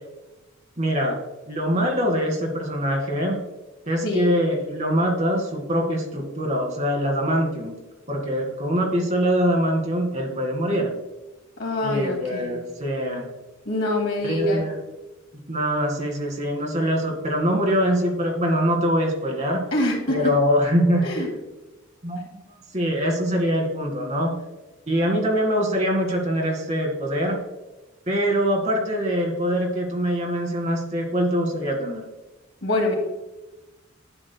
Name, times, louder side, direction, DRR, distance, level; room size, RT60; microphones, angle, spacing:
voice 1, 0.8-1.2 1.5-3.4 3.9-7.8 8.1-10.9 11.8-13.3 14.2-14.8 15.5-19.6 20.1-21.1 22.0-22.2 22.7-24.3 24.9-27.4 28.1-32.0, equal, 35° right, -1 dB, 2.0 m, -23 dB
voice 2, 11.6-12.5 13.7-14.7 19.7-20.2 21.0-21.3 32.6-32.9, left 1 dB, 70° left, 0 dB, 2.2 m, -25 dB
11.0 x 7.7 x 2.2 m, 1.1 s
head